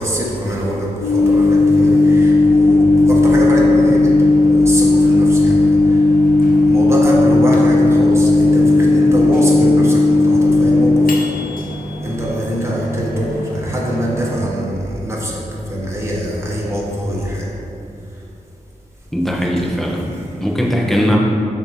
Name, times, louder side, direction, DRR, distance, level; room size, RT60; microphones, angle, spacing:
voice 1, 0.0-6.0 6.4-11.2 11.5-11.6 12.0-17.5 19.4-20.4, equal, 20° right, -5 dB, 1.3 m, -23 dB
Microwave oven, 1.0-14.5, left 2 dB, 85° left, 0.8 m, -14 dB
voice 2, 19.1-20.1 20.4-21.2, equal, ahead, -3 dB, 1.0 m, -18 dB
6.7 x 2.9 x 5.2 m, 2.7 s
wide cardioid pair, 75°, 14 cm